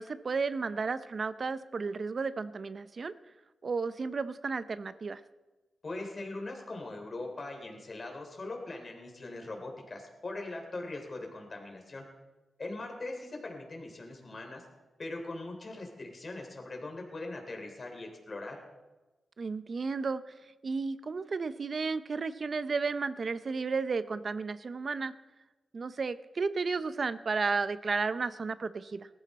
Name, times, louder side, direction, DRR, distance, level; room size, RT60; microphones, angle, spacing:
voice 1, 0.0-3.1 3.6-5.2 19.4-20.2 20.6-25.1 25.7-29.1, right 4 dB, 45° right, 13 dB, 0.7 m, -33 dB
voice 2, 5.8-12.1 12.6-14.6 15.0-18.6, left 2 dB, 40° left, 2 dB, 3.3 m, -41 dB
19.5 x 14.0 x 4.3 m, 1.1 s
wide cardioid pair, 105°, 0 cm